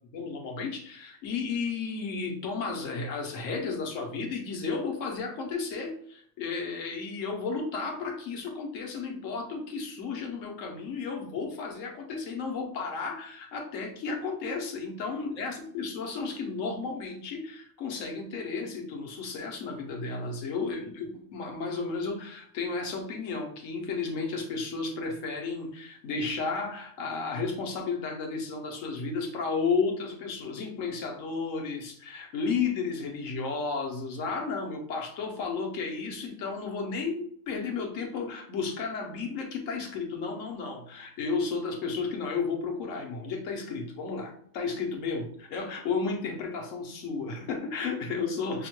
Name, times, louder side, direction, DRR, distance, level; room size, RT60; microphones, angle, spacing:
voice 1, 0.1-48.7, left 4 dB, 80° left, 2 dB, 1.2 m, -33 dB
5.8 x 2.1 x 3.0 m, 0.62 s
omnidirectional pair, 1.3 m